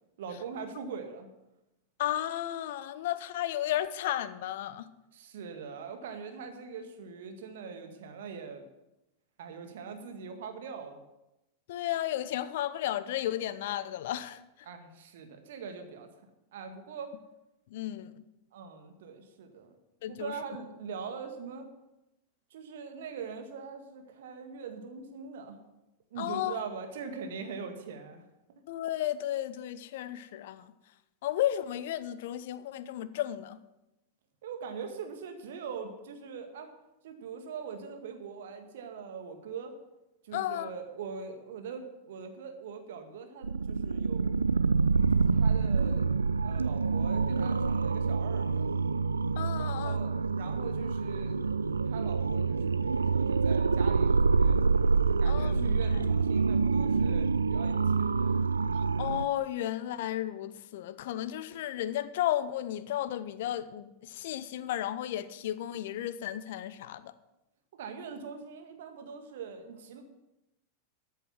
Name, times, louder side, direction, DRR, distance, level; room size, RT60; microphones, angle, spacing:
voice 1, 0.2-1.3 5.1-8.7 9.4-11.0 14.6-16.1 16.5-17.1 18.5-19.7 20.1-21.7 22.5-25.6 26.1-28.2 34.4-36.7 37.0-39.7 40.2-44.4 45.1-46.1 46.4-48.7 49.6-51.4 51.9-54.8 55.1-58.4 67.7-70.0, right 5 dB, 55° right, 1.9 m, -42 dB
voice 2, 2.0-4.9 11.7-14.4 17.7-18.2 20.0-20.3 26.2-26.6 28.7-30.7 31.2-33.6 40.3-40.7 49.4-50.0 55.3-56.0 59.0-67.1, left 12 dB, 55° left, 0.7 m, -33 dB
sound 1, 43.4-59.3, right 4 dB, 75° right, 0.4 m, -27 dB
13.0 x 8.1 x 6.1 m
figure-of-eight pair, 90°, 0 cm